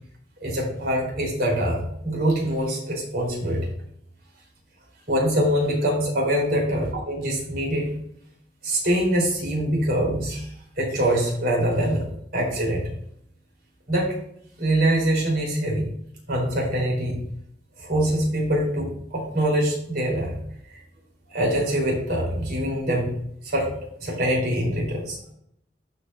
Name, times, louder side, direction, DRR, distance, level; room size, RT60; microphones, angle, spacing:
voice 1, 0.4-3.7 5.1-7.9 8.6-10.5 10.8-12.1 12.3-12.9 13.9-14.2 14.6-15.9 16.3-17.2 17.8-20.3 20.7-20.8 21.3-23.1 23.4-23.7 24.0-25.2, right 1 dB, 60° right, -1 dB, 3.4 m, -24 dB
13.0 x 5.3 x 2.5 m, 0.69 s
head